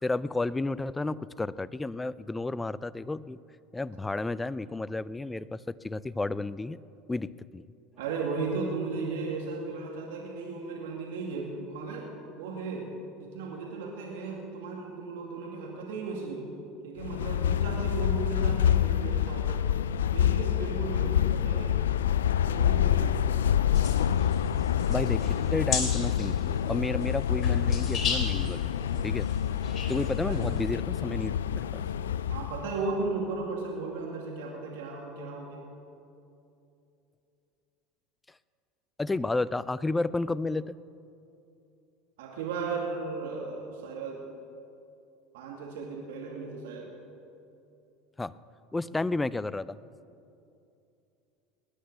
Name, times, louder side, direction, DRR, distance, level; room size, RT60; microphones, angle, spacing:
voice 1, 0.0-3.4 3.7-6.8 7.1-7.6 24.9-29.3 29.9-31.8 39.0-40.8 48.2-48.3 48.7-49.8, left 2 dB, 15° left, 18 dB, 0.5 m, -32 dB
voice 2, 8.0-12.1 12.4-12.9 13.2-16.5 16.8-19.7 20.1-21.8 22.4-23.5 25.3-25.5 30.3-30.5 32.3-35.6 42.2-44.2 45.3-46.9, right 4 dB, 80° right, -1 dB, 2.4 m, -35 dB
sound 1, 17.0-32.7, left 9 dB, 90° left, 0.4 m, -27 dB
sound 2, 23.7-30.7, left 5 dB, 40° left, 3.4 m, -37 dB
20.0 x 10.0 x 6.7 m, 2.7 s
hypercardioid pair, 90°, 0 cm